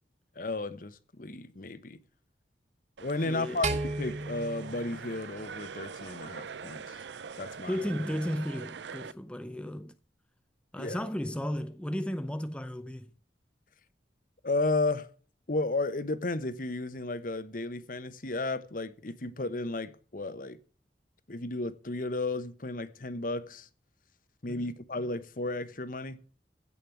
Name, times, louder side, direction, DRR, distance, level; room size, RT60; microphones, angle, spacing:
voice 1, 0.4-2.0 3.0-7.0 7.4-7.8 10.8-11.0 14.4-15.1 15.5-20.6 21.3-23.7 24.4-26.2, left 2 dB, 50° left, 1.1 m, -33 dB
sound 1, 3.0-9.1, right 6 dB, 85° right, 0.5 m, -43 dB
voice 2, 3.2-3.7 7.7-10.0 10.7-13.1 24.5-24.7, equal, 5° left, 0.6 m, -34 dB
sound 2, 3.6-6.0, right 2 dB, 40° right, 1.4 m, -35 dB
16.0 x 5.5 x 7.8 m
head